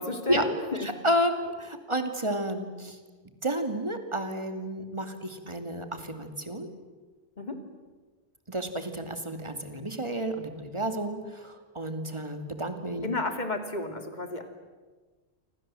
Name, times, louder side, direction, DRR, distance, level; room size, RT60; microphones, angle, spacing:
voice 1, 0.0-0.9 7.4-7.6 13.0-14.5, left 2 dB, 40° left, 6 dB, 3.0 m, -32 dB
voice 2, 0.7-3.0 3.4-6.7 8.5-13.0, right 1 dB, 25° right, 7 dB, 2.6 m, -31 dB
28.5 x 25.5 x 7.7 m, 1.3 s
omnidirectional pair, 1.2 m